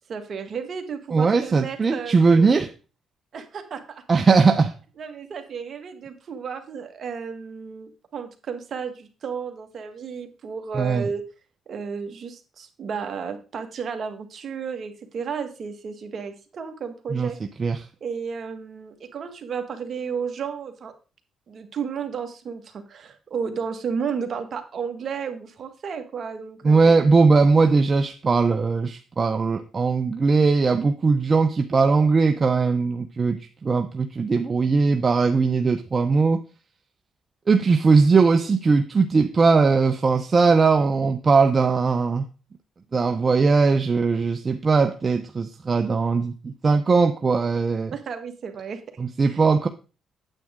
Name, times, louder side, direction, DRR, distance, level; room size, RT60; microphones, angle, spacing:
voice 1, 0.1-2.7 3.3-4.0 5.0-11.2 11.7-17.4 18.0-20.9 21.5-27.1 47.9-48.8 49.2-49.4, right 6 dB, 50° right, 6 dB, 1.8 m, -33 dB
voice 2, 1.1-2.7 4.1-4.7 10.7-11.1 17.1-17.3 17.6-17.9 26.6-36.4 37.5-42.2 42.9-47.9 49.0-49.7, right 4 dB, 35° right, 7 dB, 0.7 m, -19 dB
9.1 x 8.6 x 3.7 m, 0.34 s
cardioid pair, 90°, 0 cm